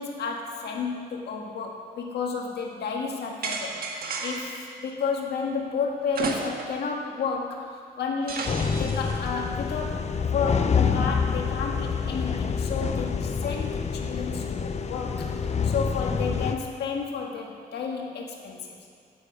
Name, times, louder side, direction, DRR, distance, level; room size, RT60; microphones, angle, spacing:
voice 1, 0.0-8.4 8.8-15.3 15.6-18.8, left 5 dB, 90° left, 0 dB, 1.7 m, -32 dB
sound 1, 3.4-4.6 6.1-6.9 7.2-7.3 8.3-9.1, right 4 dB, 65° right, 1.6 m, -32 dB
sound 2, 8.5-16.5, left 6 dB, 40° left, 0.7 m, -27 dB
9.8 x 9.7 x 8.1 m, 2.2 s
cardioid pair, 110°, 17 cm